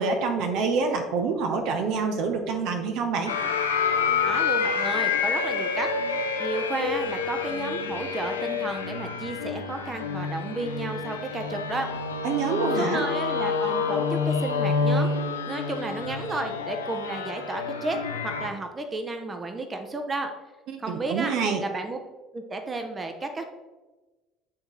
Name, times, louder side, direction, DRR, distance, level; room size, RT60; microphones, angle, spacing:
voice 1, 0.0-3.4 12.2-13.1 20.9-21.6, right 4 dB, 60° right, 5 dB, 0.8 m, -26 dB
sound 1, 3.3-18.5, left 5 dB, 90° left, 0.5 m, -28 dB
voice 2, 4.2-5.9 6.4-11.9 12.5-15.1 15.4-20.3 20.8-21.3 21.6-22.0 22.3-23.4, right 2 dB, 30° right, 6 dB, 0.7 m, -32 dB
8.7 x 3.8 x 3.1 m, 1.2 s
hypercardioid pair, 60°, 0 cm